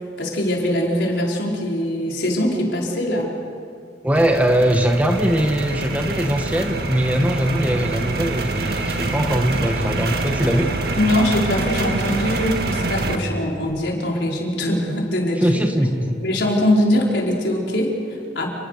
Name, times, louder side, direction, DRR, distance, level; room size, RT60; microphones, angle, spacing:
voice 1, 0.2-3.3 11.0-15.5 16.2-18.5, left 1 dB, 75° left, -2 dB, 4.9 m, -22 dB
voice 2, 4.0-10.7 15.4-16.2, equal, 10° right, 4 dB, 1.4 m, -20 dB
sound 1, 4.1-13.2, right 2 dB, 55° right, 1.8 m, -25 dB
29.5 x 21.0 x 6.7 m, 2.3 s
head